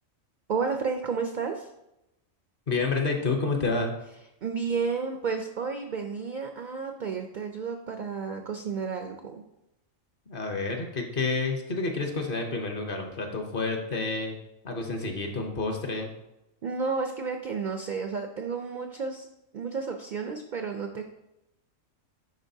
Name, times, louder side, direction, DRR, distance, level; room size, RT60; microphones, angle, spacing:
voice 1, 0.5-1.7 4.4-9.4 16.6-19.3 19.5-21.0, right 5 dB, 75° right, 4 dB, 0.4 m, -31 dB
voice 2, 2.7-3.9 10.3-14.4 14.6-16.1, left 3 dB, 45° left, 3 dB, 0.9 m, -29 dB
10.5 x 3.7 x 2.7 m, 0.90 s
omnidirectional pair, 1.4 m